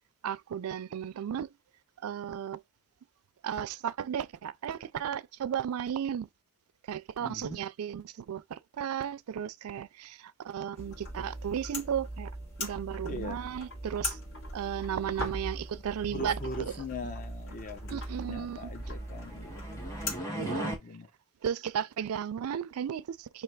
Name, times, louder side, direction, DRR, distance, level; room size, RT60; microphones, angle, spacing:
voice 1, 0.2-1.5 2.0-2.6 3.4-6.3 6.9-12.3 12.6-14.2 14.5-16.7 17.9-18.7 20.4-20.7 21.4-23.4, right 8 dB, 75° right, 0.3 m, -34 dB
voice 2, 7.2-7.6 13.0-13.5 16.0-18.0 18.3-19.9 20.5-21.1, left 3 dB, 40° left, 0.6 m, -41 dB
sound 1, 10.8-20.2, equal, 60° left, 2.1 m, -39 dB
sound 2, 18.8-20.8, right 1 dB, 15° left, 1.5 m, -37 dB
3.3 x 2.7 x 4.5 m
head